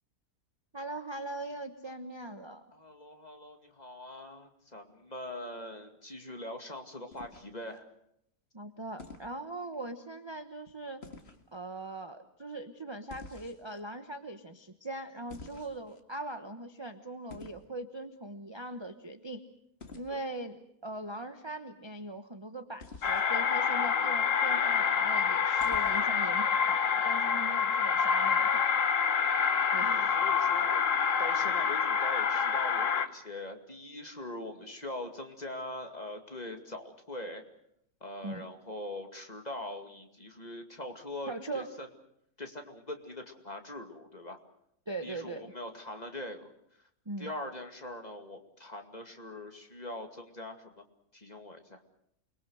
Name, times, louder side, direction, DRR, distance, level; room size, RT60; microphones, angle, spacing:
voice 1, 0.7-2.6 8.5-11.0 11.5-19.4 19.9-28.7 29.7-30.1 38.2-38.5 41.3-41.7 44.9-45.5 47.1-47.3, right 2 dB, 20° right, 7 dB, 1.0 m, -41 dB
voice 2, 2.7-7.9 20.1-20.2 29.9-37.4 38.0-41.9 42.4-44.4 45.0-46.5 47.2-50.8 51.1-51.8, left 1 dB, 25° left, 5 dB, 2.4 m, -42 dB
sound 1, 7.1-7.8 9.0-9.3 11.0-11.4 13.1-13.8 15.3-16.0 17.3-17.7 19.8-20.1 22.8-23.3 25.6-26.2, left 3 dB, 40° left, 2.2 m, -48 dB
sound 2, 23.0-33.1, left 6 dB, 55° left, 1.5 m, -27 dB
29.0 x 22.0 x 6.4 m, 0.73 s
omnidirectional pair, 1.6 m